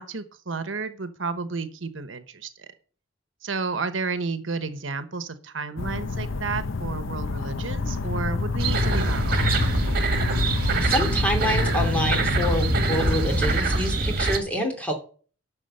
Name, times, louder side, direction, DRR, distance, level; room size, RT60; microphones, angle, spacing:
voice 1, 0.0-2.7 3.4-9.6, right 4 dB, 80° right, 10 dB, 1.1 m, -32 dB
sound 1, 5.8-13.6, left 3 dB, 90° left, 0.7 m, -28 dB
sound 2, 8.6-14.4, right 2 dB, 50° right, 1.9 m, -24 dB
voice 2, 10.6-14.9, equal, 5° left, 3 dB, 2.8 m, -27 dB
11.0 x 6.4 x 7.8 m, 0.42 s
head